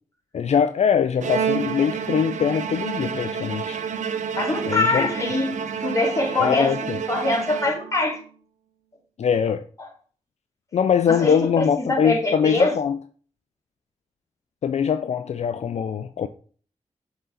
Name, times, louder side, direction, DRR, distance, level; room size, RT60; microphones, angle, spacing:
voice 1, 0.3-3.8 4.7-5.1 6.4-7.0 9.2-9.6 10.7-13.0 14.6-16.3, left 7 dB, 65° left, 0.4 m, -22 dB
Bowed string instrument, 1.2-8.2, right 7 dB, 80° right, 0.6 m, -29 dB
voice 2, 4.4-6.7 7.1-8.2 9.8-9.9 11.1-12.7, left 2 dB, 25° left, 2.2 m, -24 dB
6.7 x 3.9 x 3.9 m
cardioid pair, 50°, 12 cm